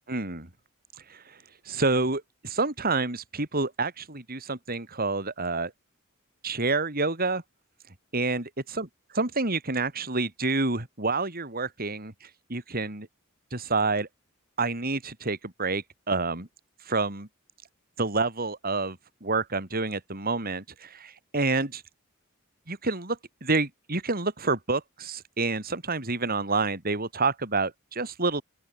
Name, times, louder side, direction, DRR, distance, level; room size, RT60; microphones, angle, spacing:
voice 1, 0.1-0.5 1.1-1.4 1.7-5.7 6.4-7.4 8.1-8.9 9.1-12.1 12.5-13.1 13.5-14.1 14.6-16.5 16.9-17.3 18.0-21.8 22.7-28.4, right 3 dB, 45° right, 3.7 m, -28 dB
open air
head